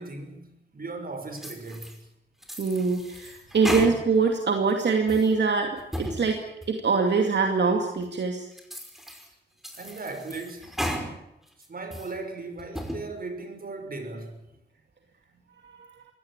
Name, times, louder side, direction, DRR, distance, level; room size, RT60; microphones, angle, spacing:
voice 1, 0.0-2.0 9.7-10.7 11.7-14.4, right 3 dB, 55° right, 5.8 m, -37 dB
sound 1, 1.4-2.0 2.4-4.3 4.7-5.3 5.8-6.2 6.6-6.7 7.3-7.4 8.0-8.1 8.6-9.3 9.6-11.1 11.5-12.1 12.6-13.0, equal, ahead, 5.4 m, -35 dB
voice 2, 2.6-8.5 15.6-15.8, right 4 dB, 80° right, 2.5 m, -24 dB
24.0 x 17.5 x 8.9 m
wide cardioid pair, 90°, 18 cm